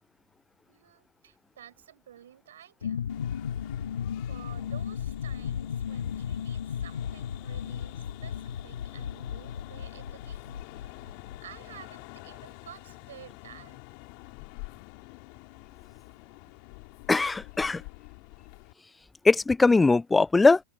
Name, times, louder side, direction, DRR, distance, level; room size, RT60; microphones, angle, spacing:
voice 1, 0.7-3.1 4.3-13.8, right 10 dB, 60° right, 5.3 m, -51 dB
sound 1, 2.8-11.4, left 8 dB, 65° left, 1.4 m, -35 dB
sound 2, 3.1-18.7, left 40 dB or more, 45° left, 4.6 m, -47 dB
voice 2, 17.1-17.8 19.2-20.6, left 3 dB, 10° left, 0.5 m, -20 dB
open air
figure-of-eight pair, 90°, 0 cm